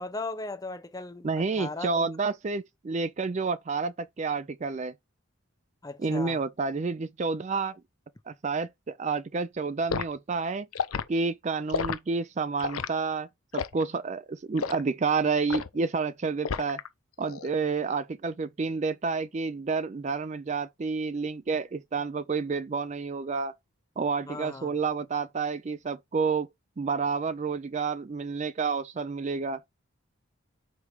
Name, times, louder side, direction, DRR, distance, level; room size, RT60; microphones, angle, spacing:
voice 1, 0.0-2.1 5.8-6.4 24.3-24.7, left 2 dB, 15° left, 0.6 m, -37 dB
voice 2, 1.2-4.9 6.0-7.8 8.3-10.7 11.1-13.3 13.5-16.8 17.2-23.5 24.0-26.5 26.8-29.6, right 4 dB, 35° right, 0.4 m, -29 dB
Liquid, 9.9-10.1 10.7-11.1 11.7-12.0 12.6-12.9 13.5-13.8 14.6-14.8 15.5-15.8 16.4-16.9 17.2-17.5, left 6 dB, 90° left, 0.6 m, -31 dB
5.0 x 4.8 x 4.5 m
head